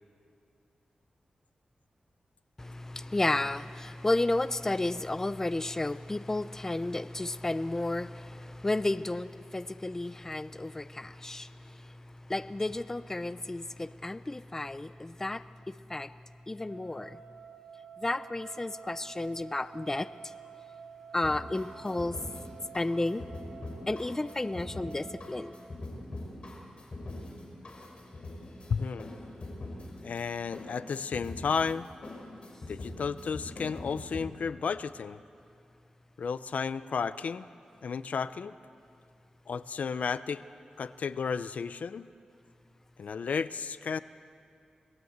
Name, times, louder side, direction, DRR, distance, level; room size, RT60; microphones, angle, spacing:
voice 1, 2.6-16.2 16.5-17.2 18.0-20.1 21.1-22.2 22.7-23.3 23.9-25.6, left 2 dB, 20° left, 13 dB, 0.5 m, -32 dB
sound 1, 16.6-25.2, right 6 dB, 25° right, 5.2 m, -50 dB
sound 2, 21.2-34.2, left 1 dB, 45° left, 5.0 m, -43 dB
voice 2, 28.7-29.1 30.0-31.9 32.7-35.2 36.2-37.5 37.8-38.5 39.5-40.4 40.8-42.1 43.0-44.0, left 6 dB, 75° left, 14 dB, 0.6 m, -33 dB
27.0 x 19.0 x 8.0 m, 2.5 s
wide cardioid pair, 120°, 2 cm